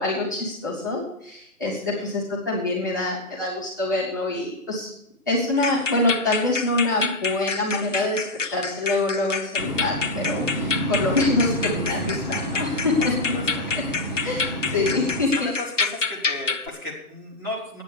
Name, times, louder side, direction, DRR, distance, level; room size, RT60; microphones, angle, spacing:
voice 1, 0.0-4.9 5.2-8.2 8.5-12.9 13.7-13.8 14.2-15.5, left 2 dB, 10° left, -7 dB, 1.7 m, -25 dB
voice 2, 1.6-2.1 11.9-12.2 12.6-13.7 14.9-15.0 15.3-17.8, left 2 dB, 15° right, -8 dB, 1.4 m, -36 dB
sound 1, 5.6-16.7, left 5 dB, 55° left, 0.8 m, -29 dB
Waves surf, 9.6-15.2, right 1 dB, 30° right, 1.9 m, -29 dB
10.0 x 8.8 x 6.9 m, 0.76 s
figure-of-eight pair, 175°, 45 cm